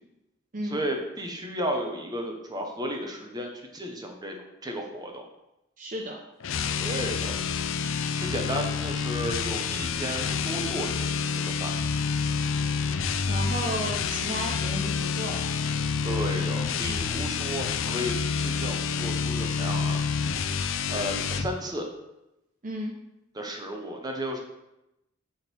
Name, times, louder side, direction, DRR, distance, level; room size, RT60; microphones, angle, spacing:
voice 1, 0.7-4.4 4.6-5.2 6.8-7.4 8.2-11.7 16.0-20.0 20.9-21.9 23.3-24.4, equal, 20° right, 2 dB, 1.0 m, -33 dB
voice 2, 5.8-6.2 13.3-15.5 22.6-22.9, right 1 dB, 40° right, 0 dB, 0.8 m, -33 dB
sound 1, 6.4-21.5, left 5 dB, 65° left, 0.5 m, -28 dB
6.8 x 3.9 x 6.2 m, 0.90 s
head